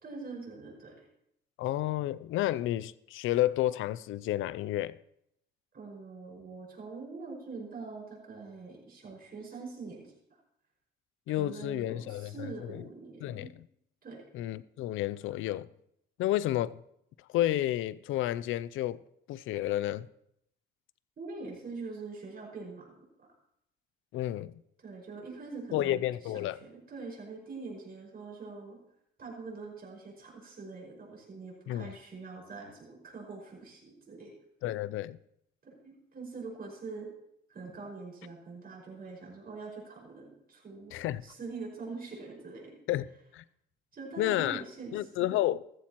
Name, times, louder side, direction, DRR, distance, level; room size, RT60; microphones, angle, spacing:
voice 1, 0.0-1.1 5.7-10.1 11.4-13.5 14.0-14.2 21.2-23.3 24.8-28.8 29.2-34.3 35.6-37.1 37.5-40.9 41.2-42.8 43.9-45.3, right 4 dB, 50° right, 5.6 m, -44 dB
voice 2, 1.6-5.0 11.3-12.8 13.2-13.5 14.3-15.7 16.2-16.8 17.3-19.0 19.3-20.1 24.1-24.6 25.7-26.6 31.7-31.9 34.6-35.2 40.9-41.2 42.9-43.4 44.2-44.6 44.9-45.6, left 14 dB, 85° left, 0.5 m, -31 dB
14.5 x 14.5 x 3.0 m
cardioid pair, 90°, 20 cm